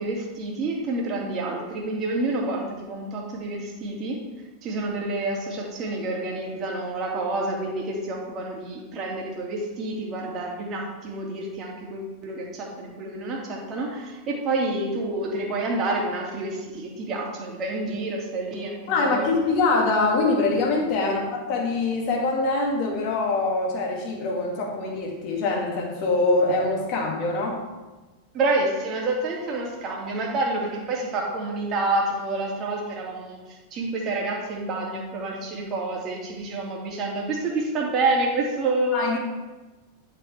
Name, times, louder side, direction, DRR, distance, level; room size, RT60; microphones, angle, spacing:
voice 1, 0.0-4.2 4.6-19.3 21.0-21.3 28.3-39.2, right 2 dB, 30° right, -1 dB, 2.4 m, -28 dB
voice 2, 18.9-27.6 38.9-39.2, left 3 dB, 40° left, -1 dB, 2.5 m, -24 dB
10.5 x 7.4 x 3.5 m, 1.2 s
figure-of-eight pair, 90°, 0 cm